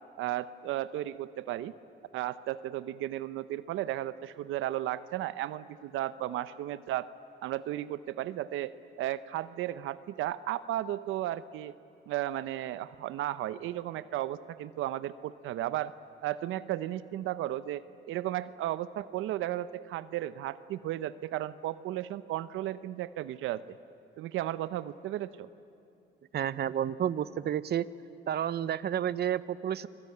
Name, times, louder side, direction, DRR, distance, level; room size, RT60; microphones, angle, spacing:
voice 1, 0.2-1.7 2.1-7.1 7.4-11.7 12.1-15.9 16.2-23.8 24.2-25.5, right 13 dB, 90° right, 15 dB, 0.7 m, -34 dB
voice 2, 26.3-27.8 28.3-29.9, right 10 dB, 55° right, 16 dB, 0.8 m, -30 dB
28.5 x 20.5 x 9.6 m, 2.8 s
cardioid pair, 90°, 20 cm